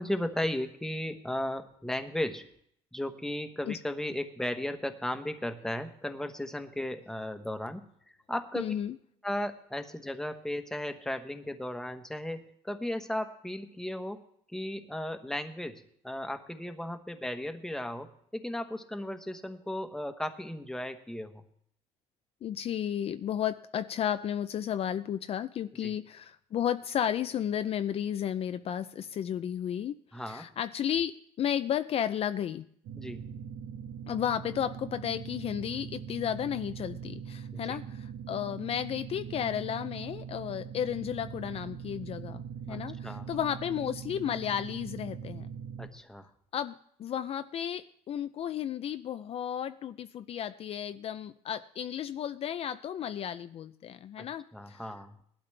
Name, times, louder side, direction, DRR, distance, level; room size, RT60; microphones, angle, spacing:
voice 1, 0.0-2.5 2.9-7.8 8.3-8.7 9.2-14.2 14.5-21.4 25.8-25.9 30.1-30.5 33.0-33.2 37.5-37.8 42.7-43.3 45.8-46.3 54.2-54.3 54.5-55.1, left 1 dB, 5° left, 6 dB, 1.3 m, -35 dB
voice 2, 8.5-8.9 22.4-30.0 30.3-31.1 31.4-32.6 34.1-45.5 46.5-54.9, left 9 dB, 45° left, 10 dB, 0.5 m, -33 dB
sound 1, 32.8-45.9, right 7 dB, 75° right, 1.6 m, -42 dB
19.5 x 12.0 x 3.4 m, 0.67 s
cardioid pair, 105°, 14 cm